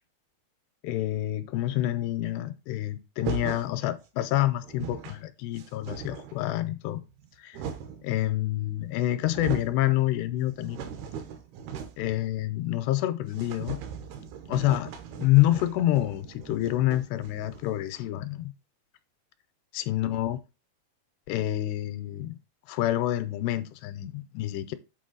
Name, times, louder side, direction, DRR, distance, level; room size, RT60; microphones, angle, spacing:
voice 1, 0.8-7.0 7.4-7.6 8.0-10.8 12.0-13.8 14.5-14.9 15.2-18.5 19.7-20.4 21.3-22.4 22.7-24.7, left 15 dB, 85° left, 2.7 m, -27 dB
sound 1, 3.2-3.7 4.4-4.5 4.6-5.2 5.6-6.4 7.1-8.1 8.8-8.9 9.2-9.8 10.2-12.2 12.4-12.5 12.8-12.9 13.3-17.8, right 8 dB, 75° right, 2.7 m, -39 dB
8.1 x 3.9 x 3.9 m
omnidirectional pair, 4.8 m